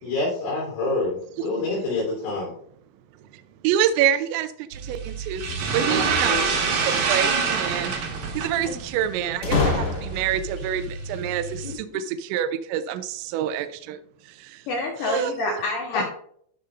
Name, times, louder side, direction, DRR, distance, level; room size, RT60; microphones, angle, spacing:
voice 1, 0.0-2.5 5.9-6.4 8.6-8.8 11.6-11.8 15.9-16.0, left 2 dB, 85° left, -7 dB, 6.2 m, -27 dB
voice 2, 3.6-5.4 5.7-6.4 6.8-7.9 8.3-14.0 14.3-14.6 15.0-15.6, right 10 dB, 80° right, 10 dB, 2.7 m, -27 dB
sound 1, 4.7-11.7, right 5 dB, 60° right, 2.1 m, -27 dB
sound 2, 5.9-7.0 9.4-10.5, left 3 dB, 45° left, 2.1 m, -26 dB
voice 3, 14.7-16.0, left 2 dB, 70° left, -1 dB, 2.1 m, -27 dB
13.0 x 5.6 x 2.5 m, 0.63 s
omnidirectional pair, 5.5 m